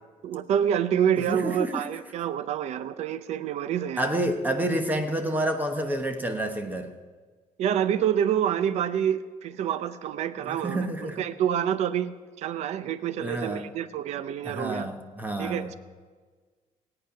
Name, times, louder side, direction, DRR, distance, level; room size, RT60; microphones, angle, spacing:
voice 1, 0.2-4.1 7.6-14.9 15.4-15.7, right 9 dB, 55° right, 0.6 m, -27 dB
voice 2, 1.3-1.9 4.0-6.9 10.4-11.2 13.2-13.7 14.4-15.7, right 1 dB, 15° right, 1.0 m, -29 dB
19.5 x 8.8 x 5.7 m
cardioid pair, 175°, 14 cm